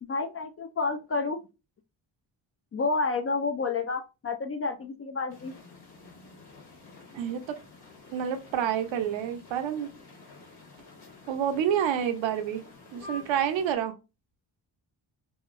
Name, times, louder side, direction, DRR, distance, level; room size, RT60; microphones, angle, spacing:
voice 1, 0.0-1.4 2.7-5.5, left 4 dB, 30° left, 0.4 m, -30 dB
sound 1, 5.3-13.8, left 3 dB, 50° left, 1.2 m, -49 dB
voice 2, 7.1-7.6 8.1-9.9 11.3-12.6 12.9-13.9, right 9 dB, 70° right, 0.7 m, -28 dB
2.8 x 2.3 x 2.4 m
supercardioid pair, 55°, 48 cm